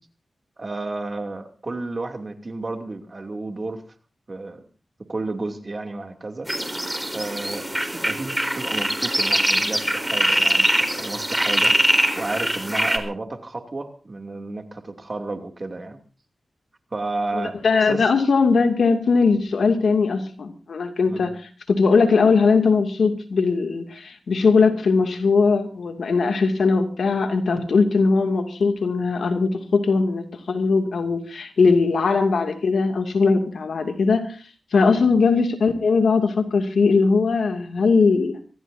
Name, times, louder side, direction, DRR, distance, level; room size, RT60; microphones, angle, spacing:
voice 1, 0.6-3.8 4.3-4.6 5.1-6.5 7.1-11.7 12.1-16.0 16.9-18.1 21.1-21.3, right 2 dB, 45° right, 5 dB, 2.8 m, -32 dB
sound 1, 6.5-13.0, right 1 dB, 10° right, 4.0 m, -22 dB
voice 2, 17.3-21.3 21.7-34.4 34.7-38.4, left 4 dB, 80° left, 5 dB, 2.5 m, -20 dB
25.0 x 16.0 x 2.7 m, 0.37 s
cardioid pair, 55°, 0 cm